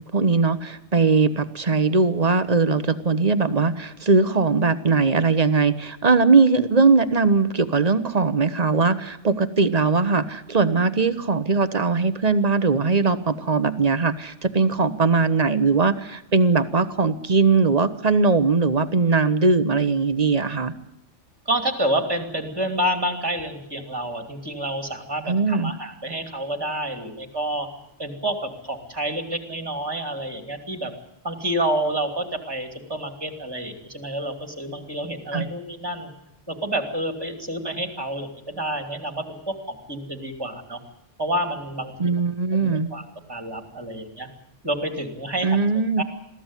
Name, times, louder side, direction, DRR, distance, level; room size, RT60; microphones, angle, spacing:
voice 1, 0.1-20.7 25.3-25.7 35.3-35.5 42.0-42.9 45.4-46.0, right 4 dB, 35° right, 13 dB, 1.1 m, -20 dB
voice 2, 21.5-27.7 28.0-30.9 31.2-36.1 36.5-40.8 41.2-42.1 42.6-44.3 44.6-45.6 46.0-46.1, right 1 dB, 20° right, 6 dB, 2.9 m, -28 dB
22.0 x 14.5 x 9.9 m, 0.86 s
omnidirectional pair, 1.2 m